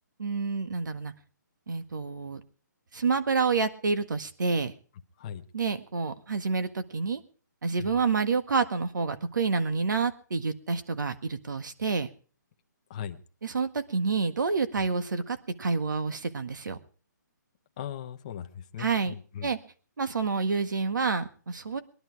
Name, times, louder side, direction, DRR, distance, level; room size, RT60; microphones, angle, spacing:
voice 1, 0.2-1.1 1.7-2.4 2.9-4.7 5.5-7.2 7.6-12.1 13.4-16.8 18.8-19.1 19.4-19.6 20.0-21.8, right 4 dB, 70° right, 10 dB, 1.7 m, -28 dB
voice 2, 12.9-13.2 14.8-14.9 17.8-19.5, left 9 dB, 20° left, 6 dB, 0.8 m, -39 dB
21.5 x 11.0 x 4.6 m, 0.40 s
hypercardioid pair, 170°, 10 cm